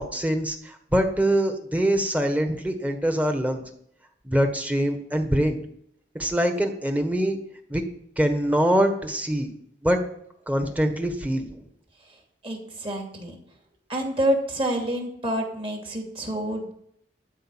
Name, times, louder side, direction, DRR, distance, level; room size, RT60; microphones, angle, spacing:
voice 1, 0.0-3.6 4.2-5.6 6.1-7.4 7.7-7.8 8.2-9.5 9.8-10.0 10.5-11.6, equal, 10° right, 6 dB, 1.4 m, -24 dB
voice 2, 12.4-13.4 13.9-16.7, right 1 dB, 30° right, 1 dB, 2.7 m, -27 dB
12.5 x 5.2 x 8.9 m, 0.71 s
head